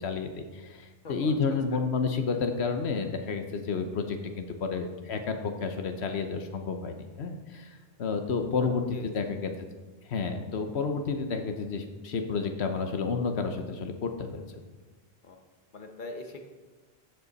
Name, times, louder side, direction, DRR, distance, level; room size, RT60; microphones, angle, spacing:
voice 1, 0.0-9.7 10.1-14.6, left 5 dB, 90° left, 6 dB, 1.2 m, -31 dB
voice 2, 8.9-9.3 15.2-15.4 15.7-16.4, left 2 dB, 50° left, 3 dB, 1.3 m, -42 dB
14.5 x 8.1 x 4.1 m, 1.3 s
omnidirectional pair, 1.1 m